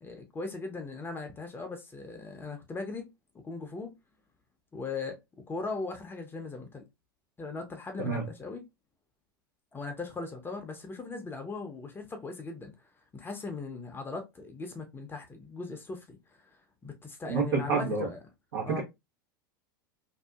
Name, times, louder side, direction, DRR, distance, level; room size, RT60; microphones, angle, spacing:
voice 1, 0.0-3.1 3.4-3.9 4.7-5.2 5.5-6.8 7.4-8.6 9.7-18.2 18.7-18.8, left 3 dB, 20° left, 0.6 m, -39 dB
voice 2, 17.3-18.1 18.5-18.8, right 4 dB, 80° right, 1.0 m, -28 dB
2.6 x 2.5 x 2.3 m
hypercardioid pair, 95°, 12 cm